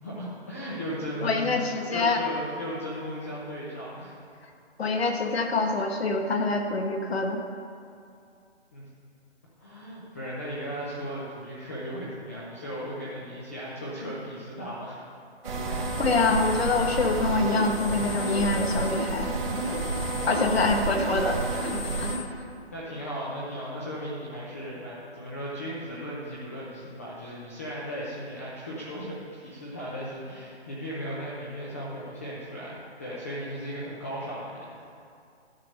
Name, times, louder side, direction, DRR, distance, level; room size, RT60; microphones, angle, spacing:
voice 1, 0.0-4.1 8.7-8.8 9.6-15.0 20.1-20.7 22.7-34.7, equal, 15° left, -7 dB, 0.5 m, -36 dB
voice 2, 1.2-2.2 4.8-7.4 16.0-19.3 20.3-21.4, left 3 dB, 65° left, 4 dB, 1.3 m, -25 dB
sound 1, 15.4-22.2, right 2 dB, 55° right, 1.9 m, -30 dB
11.0 x 4.9 x 6.4 m, 2.4 s
hypercardioid pair, 160°, 34 cm